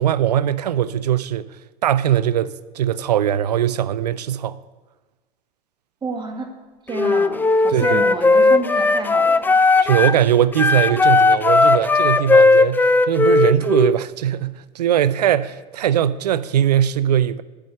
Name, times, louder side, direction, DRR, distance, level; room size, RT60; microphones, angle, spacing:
voice 1, 0.0-1.5 1.8-4.6 7.7-8.0 9.8-17.4, right 10 dB, 75° right, 0.5 m, -20 dB
voice 2, 6.0-6.6 6.9-9.6, right 3 dB, 20° right, 2.0 m, -29 dB
Wind instrument woodwind instrument, 6.9-10.2 10.5-13.9, left 3 dB, 10° left, 0.4 m, -16 dB
12.5 x 5.0 x 8.3 m
figure-of-eight pair, 70°, 21 cm